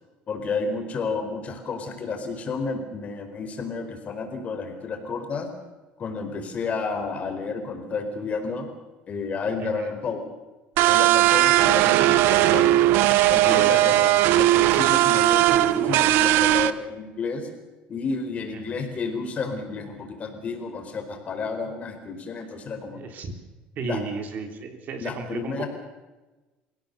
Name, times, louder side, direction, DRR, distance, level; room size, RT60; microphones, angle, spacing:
voice 1, 0.3-5.5 6.0-8.6 9.1-10.2 10.9-12.8 13.3-17.5 17.9-23.0 23.8-24.0 25.0-25.7, left 4 dB, 35° left, 5 dB, 4.6 m, -31 dB
voice 2, 9.6-9.9 13.4-14.0 22.9-23.3 23.8-25.6, right 4 dB, 50° right, 5 dB, 3.5 m, -33 dB
sound 1, 10.8-16.7, right 15 dB, 75° right, 1.0 m, -18 dB
29.0 x 17.0 x 7.0 m, 1.2 s
cardioid pair, 120°, 4 cm